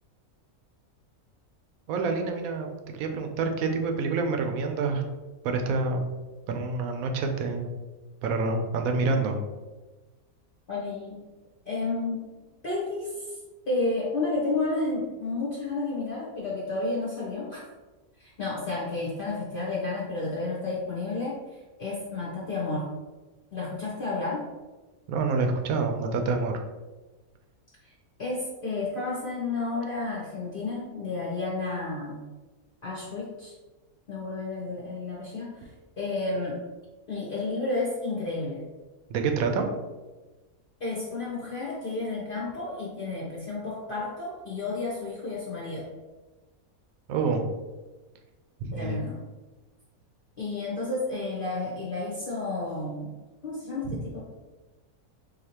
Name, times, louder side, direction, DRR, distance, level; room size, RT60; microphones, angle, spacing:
voice 1, 1.9-2.7 2.9-5.0 5.4-6.0 6.5-7.7 8.2-9.4 25.1-26.6 39.1-39.7 47.1-47.4 48.6-49.0 53.9-54.0, right 4 dB, 75° right, 4 dB, 1.0 m, -27 dB
voice 2, 10.7-11.2 11.6-12.3 12.6-13.4 13.7-17.6 18.2-21.4 21.8-22.9 23.5-24.5 27.8-27.9 28.2-32.2 32.8-33.5 34.1-35.7 36.0-36.6 37.1-38.6 40.8-45.9 48.7-49.2 50.4-53.1 53.4-54.2, left 3 dB, 45° left, -7 dB, 0.8 m, -31 dB
4.1 x 2.7 x 2.8 m, 1.2 s
omnidirectional pair, 1.5 m